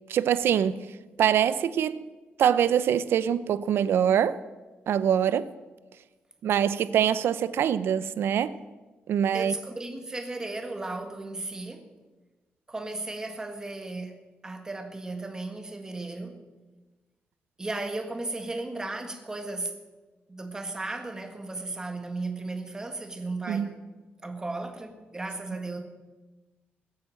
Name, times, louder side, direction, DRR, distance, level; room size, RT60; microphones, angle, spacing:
voice 1, 0.1-0.8 1.2-2.0 2.4-4.4 4.9-5.5 6.4-8.6 9.1-9.5 23.5-23.7, right 9 dB, 85° right, 0.7 m, -24 dB
voice 2, 9.3-11.9 12.7-16.4 17.6-19.7 20.3-23.8 24.2-25.8, right 2 dB, 15° right, 1.7 m, -35 dB
19.5 x 8.6 x 7.6 m
wide cardioid pair, 170°, 4 cm